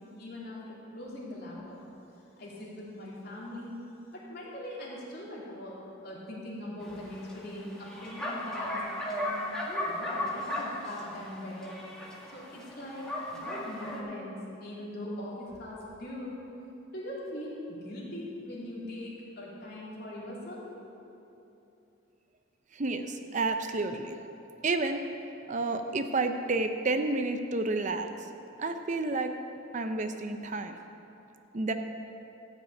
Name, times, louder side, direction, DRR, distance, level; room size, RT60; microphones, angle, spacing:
voice 1, 0.2-1.8 2.4-3.8 4.3-5.8 6.0-8.8 9.1-9.4 9.8-11.8 12.3-14.3 14.6-16.4 16.9-20.7, left 1 dB, 55° left, -6 dB, 3.4 m, -41 dB
Bark, 6.8-14.0, left 1 dB, 5° left, 1.8 m, -36 dB
voice 2, 22.8-24.2 24.6-25.0 25.5-28.1 28.6-29.3 29.7-30.7 31.5-31.7, right 3 dB, 40° right, 7 dB, 0.6 m, -30 dB
14.0 x 6.1 x 8.8 m, 2.9 s
head